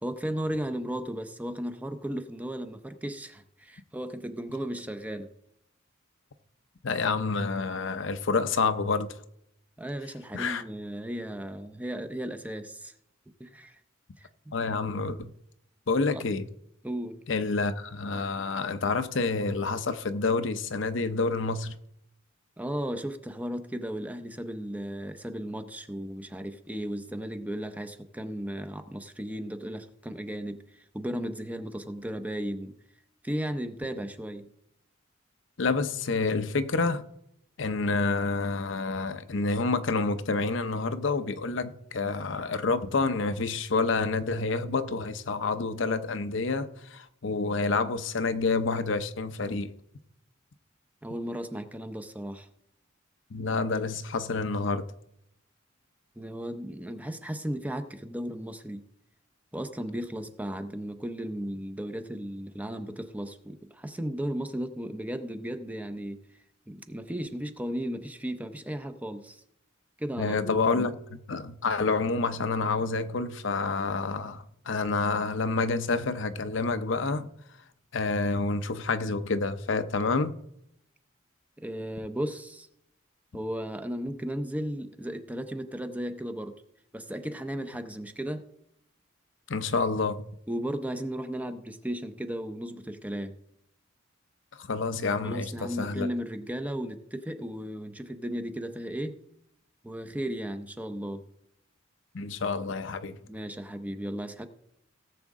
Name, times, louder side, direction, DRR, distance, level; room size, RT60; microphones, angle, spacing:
voice 1, 0.0-5.3 9.8-12.9 13.4-13.8 14.2-14.5 16.1-16.3 16.8-17.2 22.6-32.8 33.2-34.5 51.0-52.5 56.2-58.8 59.5-66.2 66.7-69.4 70.0-70.9 81.6-82.7 83.3-86.6 86.9-88.5 90.5-93.3 95.2-99.2 99.8-101.2 103.3-104.5, equal, 10° right, 0.6 m, -35 dB
voice 2, 6.8-9.2 10.3-10.6 14.5-15.3 15.9-16.5 17.3-21.8 35.6-37.0 37.6-49.7 53.3-54.9 70.2-77.3 77.9-80.4 89.5-90.2 94.6-96.1 102.1-103.2, left 3 dB, 65° left, 0.7 m, -28 dB
17.5 x 7.4 x 3.6 m
head